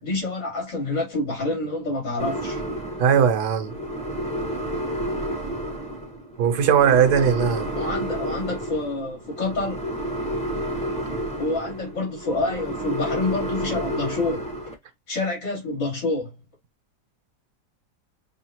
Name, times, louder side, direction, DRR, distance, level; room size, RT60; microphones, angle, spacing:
voice 1, 0.0-2.6 7.8-9.8 11.4-14.4 15.1-16.3, left 2 dB, 80° left, 4.1 m, -27 dB
sound 1, 2.2-14.7, right 1 dB, 5° left, 0.9 m, -30 dB
voice 2, 3.0-3.7 6.4-7.7, right 8 dB, 65° right, 1.5 m, -19 dB
6.5 x 2.4 x 2.9 m
omnidirectional pair, 1.9 m